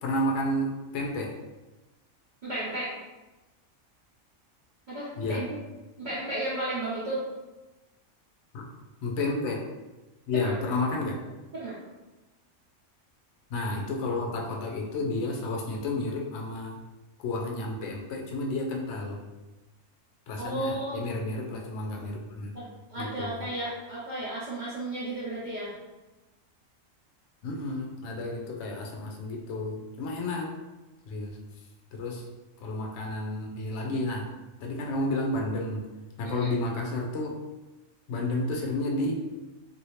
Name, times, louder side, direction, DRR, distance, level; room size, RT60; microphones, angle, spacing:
voice 1, 0.0-1.4 5.2-5.5 8.5-8.7 9.0-9.7 10.3-11.2 13.5-16.8 17.2-19.2 20.3-22.6 23.0-23.5 27.4-30.5 31.1-31.4 31.9-32.2 32.6-34.3 34.6-35.8 36.2-37.3 38.1-39.4, left 2 dB, 70° left, 0 dB, 0.8 m, -31 dB
voice 2, 2.4-2.9 4.9-5.6 6.0-7.2 10.3-10.8 11.5-11.8 20.4-21.0 22.5-22.6 22.9-25.7 36.2-36.5, right 1 dB, 40° right, -11 dB, 0.8 m, -33 dB
2.7 x 2.7 x 3.1 m, 1.1 s
omnidirectional pair, 1.4 m